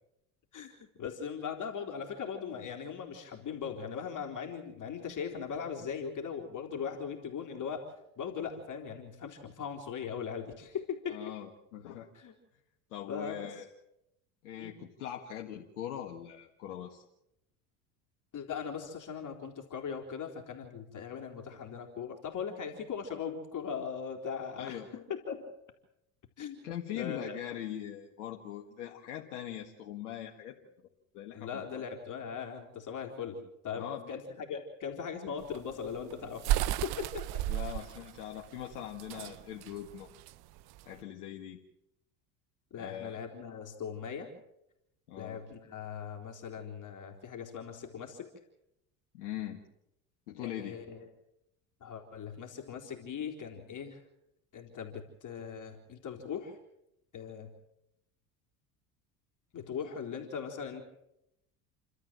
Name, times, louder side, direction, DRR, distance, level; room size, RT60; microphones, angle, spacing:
voice 1, 0.5-11.3 12.1-12.3 13.1-13.5 14.6-14.8 18.3-25.5 26.4-26.6 26.9-27.4 31.3-36.5 36.8-37.3 42.7-44.3 45.2-48.3 50.4-51.1 51.8-54.0 54.5-56.6 57.1-57.5 59.5-60.8, left 6 dB, 45° left, 1 dB, 3.8 m, -39 dB
voice 2, 11.1-12.1 12.9-13.7 14.4-17.1 24.5-24.9 26.6-30.6 31.1-31.8 33.8-34.2 37.5-40.1 40.9-41.6 42.7-43.2 45.1-45.4 49.1-49.6 50.3-50.8, left 11 dB, 90° left, 1 dB, 2.0 m, -41 dB
sound 1, 35.4-41.0, right 14 dB, 60° right, 1.0 m, -34 dB
29.5 x 13.0 x 7.6 m, 0.84 s
hypercardioid pair, 80°, 43 cm